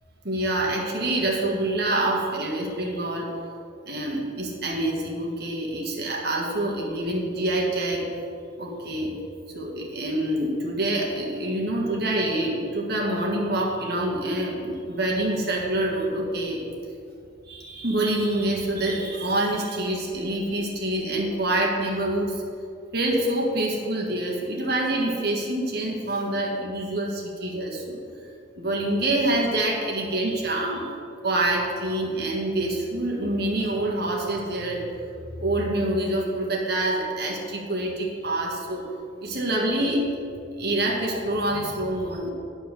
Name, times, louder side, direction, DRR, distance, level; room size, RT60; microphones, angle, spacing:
voice 1, 0.2-3.3 3.8-8.1 8.6-9.1 9.5-16.6 17.5-22.4 22.9-28.0 28.6-30.9 31.2-34.8 35.4-38.8 39.2-40.2 40.6-42.3, right 1 dB, 55° right, -2 dB, 1.6 m, -26 dB
9.4 x 4.5 x 6.8 m, 2.5 s
head